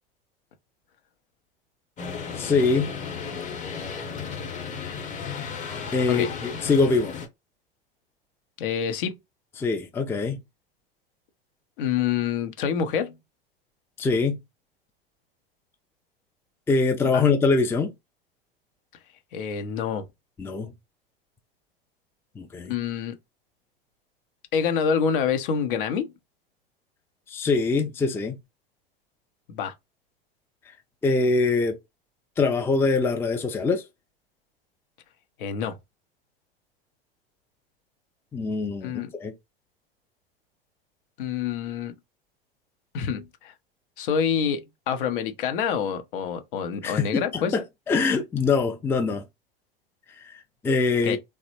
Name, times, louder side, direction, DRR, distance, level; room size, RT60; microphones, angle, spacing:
sound 1, 2.0-7.3, left 6 dB, 25° left, 0.9 m, -34 dB
voice 1, 2.4-2.9 5.9-7.2 9.6-10.4 14.0-14.4 16.7-17.9 20.4-20.7 22.4-22.7 27.3-28.4 31.0-31.8 32.4-33.8 38.3-39.3 46.8-49.2 50.3-50.4 50.6-51.2, left 4 dB, 10° left, 0.4 m, -23 dB
voice 2, 8.6-9.1 11.8-13.1 17.0-17.2 19.3-20.0 22.7-23.2 24.5-26.1 29.5-29.7 35.4-35.8 38.8-39.1 41.2-41.9 42.9-43.5 44.0-47.5 51.0-51.2, left 7 dB, 60° left, 0.6 m, -27 dB
3.1 x 2.0 x 2.8 m
figure-of-eight pair, 90°, 30 cm